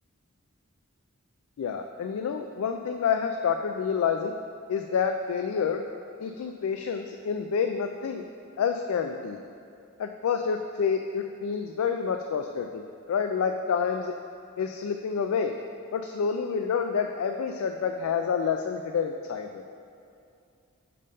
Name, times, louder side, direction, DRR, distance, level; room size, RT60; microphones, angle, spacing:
voice 1, 1.6-4.3 4.7-5.8 6.2-8.2 8.6-9.4 10.0-14.1 14.6-15.5 15.9-19.6, left 6 dB, 90° left, 5 dB, 0.3 m, -28 dB
5.4 x 5.3 x 5.4 m, 2.5 s
head